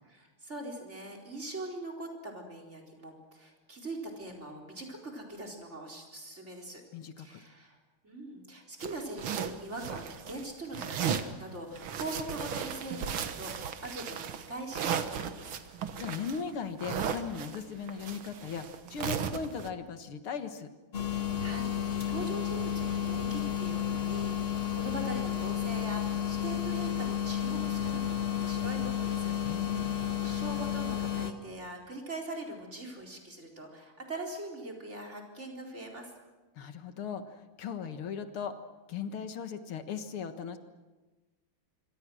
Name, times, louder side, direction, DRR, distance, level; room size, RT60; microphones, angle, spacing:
voice 1, 0.1-6.8 7.2-7.8 8.0-15.5 21.0-29.3 29.7-36.1, right 1 dB, 30° right, 1 dB, 4.6 m, -42 dB
voice 2, 6.9-7.4 16.0-20.7 29.4-30.0 36.6-38.6 38.9-40.6, left 6 dB, 80° left, 9 dB, 2.4 m, -38 dB
sound 1, 8.8-10.4 10.7-11.4 11.8-19.7, right 8 dB, 75° right, 2.1 m, -35 dB
sound 2, 20.9-31.3, left 9 dB, 30° left, 1.6 m, -32 dB
26.0 x 24.5 x 6.3 m, 1.2 s
omnidirectional pair, 2.3 m